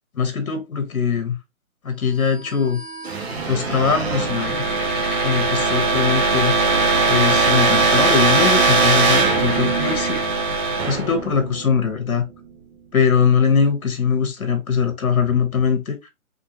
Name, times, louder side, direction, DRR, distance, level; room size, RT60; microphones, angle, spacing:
voice 1, 0.1-1.4 1.8-2.8 3.5-4.6 5.2-6.5 7.1-10.2 10.9-12.2 12.9-16.0, left 6 dB, 85° left, 1.2 m, -21 dB
sound 1, 2.4-12.1, right 4 dB, 50° right, 1.1 m, -20 dB
sound 2, 4.3-10.3, left 4 dB, 40° left, 1.2 m, -33 dB
3.6 x 2.7 x 2.8 m
hypercardioid pair, 165°, 42 cm